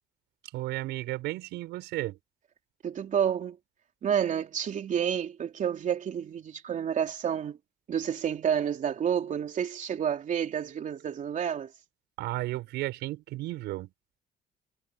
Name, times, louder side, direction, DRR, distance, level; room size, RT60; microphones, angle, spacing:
voice 1, 0.5-2.2 12.2-13.9, right 17 dB, 85° right, 5.9 m, -33 dB
voice 2, 2.8-3.6 4.0-7.6 7.9-11.7, right 8 dB, 50° right, 3.3 m, -29 dB
cardioid pair, 110°, 17 cm